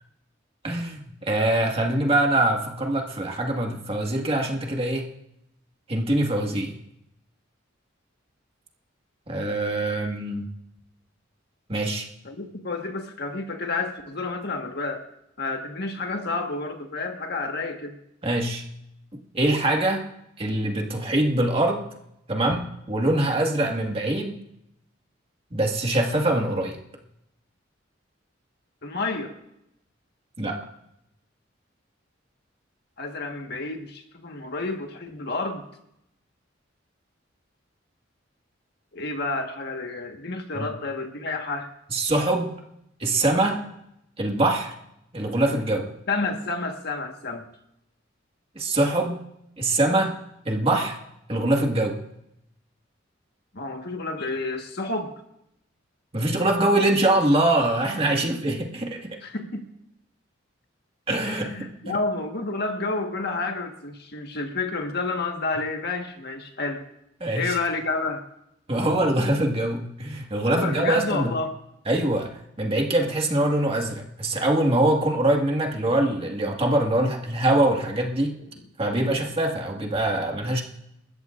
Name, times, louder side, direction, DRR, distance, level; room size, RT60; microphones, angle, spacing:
voice 1, 0.6-5.1 5.9-6.7 9.3-10.5 11.7-12.1 18.2-18.6 19.3-20.0 20.4-21.9 22.3-24.4 25.5-26.8 30.4-30.6 40.5-40.7 41.9-42.5 43.0-43.6 44.2-44.7 45.1-45.9 48.6-49.2 49.6-50.1 50.5-51.0 51.3-52.0 56.1-59.2 61.1-61.5 67.2-67.6 68.7-71.3 71.9-78.3 78.8-80.6, right 1 dB, 30° right, 1 dB, 1.9 m, -23 dB
voice 2, 12.2-15.0 15.4-17.9 28.8-29.3 33.0-35.6 38.9-41.7 46.1-47.4 53.5-55.1 59.2-59.7 61.3-66.8 67.3-68.2 70.5-71.5 78.4-78.5 78.9-79.1, left 3 dB, 55° left, 4 dB, 1.5 m, -30 dB
29.0 x 14.0 x 2.6 m, 0.81 s
head